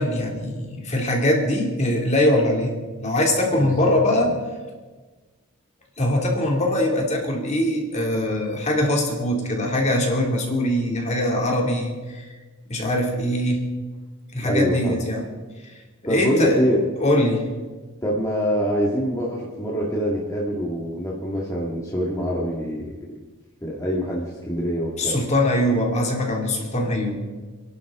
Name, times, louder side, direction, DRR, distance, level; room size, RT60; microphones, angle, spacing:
voice 1, 0.0-2.7 3.0-4.3 6.0-12.3 12.7-13.6 14.3-15.2 15.6-15.7 16.0-16.6 17.0-17.5 25.0-27.1, left 1 dB, 30° left, 0 dB, 2.8 m, -22 dB
voice 2, 3.6-3.9 4.2-4.3 14.4-15.0 16.1-16.9 18.0-23.0 23.6-25.2, equal, 15° left, -4 dB, 2.1 m, -24 dB
28.5 x 11.5 x 3.8 m, 1.3 s
head